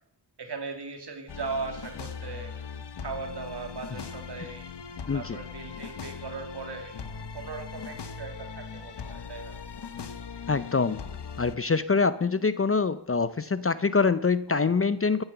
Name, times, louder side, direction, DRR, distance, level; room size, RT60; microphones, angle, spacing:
voice 1, 0.4-2.5 3.0-4.7 5.1-6.9 7.3-9.6 14.5-14.9, right 4 dB, 70° right, 4 dB, 2.7 m, -38 dB
sound 1, 1.3-11.6, left 6 dB, 75° left, 1.2 m, -40 dB
voice 2, 5.1-5.4 10.5-11.0 11.4-15.2, left 4 dB, 35° left, 15 dB, 0.6 m, -25 dB
14.5 x 9.8 x 6.8 m, 0.71 s
wide cardioid pair, 75°, 42 cm